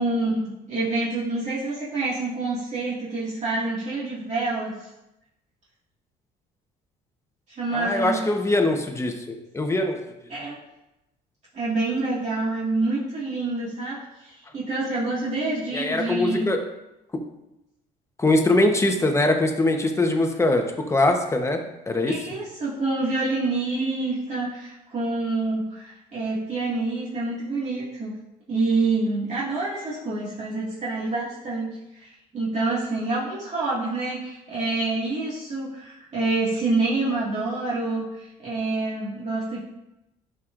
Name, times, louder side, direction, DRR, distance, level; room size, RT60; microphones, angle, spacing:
voice 1, 0.0-4.9 7.6-8.3 10.3-10.6 11.5-16.5 22.1-28.2 28.5-39.6, right 2 dB, 40° right, -8 dB, 2.0 m, -27 dB
voice 2, 7.7-10.0 15.7-16.6 17.1-17.2 18.2-22.1, left 2 dB, 15° left, 4 dB, 1.0 m, -22 dB
11.5 x 5.6 x 2.5 m, 0.92 s
cardioid pair, 110°, 17 cm